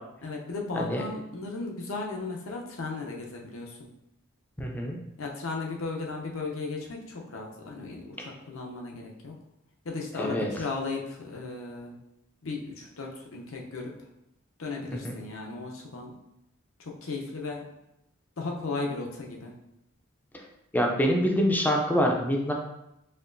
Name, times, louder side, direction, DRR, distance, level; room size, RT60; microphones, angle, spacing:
voice 1, 0.2-3.9 5.2-9.3 9.8-12.0 12.4-13.9 14.6-16.1 16.8-17.6 18.4-19.5, left 3 dB, 75° left, 0 dB, 0.7 m, -36 dB
voice 2, 4.6-5.0 10.2-10.5 15.0-15.1 20.7-22.5, equal, 10° left, 1 dB, 0.4 m, -25 dB
4.3 x 2.9 x 2.6 m, 0.84 s
head